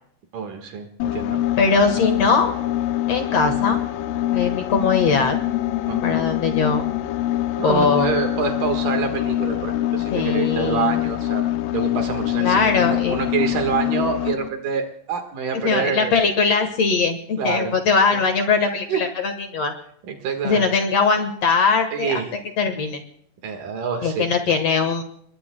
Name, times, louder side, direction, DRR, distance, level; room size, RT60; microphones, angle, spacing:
voice 1, 0.3-1.4 5.8-6.2 7.6-11.4 11.7-16.2 17.4-17.7 18.1-18.3 18.9-19.0 20.1-20.7 21.9-22.3 23.4-24.3, right 6 dB, 75° right, 4 dB, 3.3 m, -26 dB
sound 1, 1.0-14.5, left 13 dB, 90° left, 2.5 m, -24 dB
voice 2, 1.6-2.5 3.1-3.8 4.3-5.4 6.0-6.8 7.6-8.1 10.1-11.0 12.4-13.2 15.6-19.7 20.4-22.2 22.6-23.0 24.0-25.0, left 5 dB, 55° left, 6 dB, 2.4 m, -20 dB
29.0 x 21.5 x 2.3 m, 0.65 s
omnidirectional pair, 3.7 m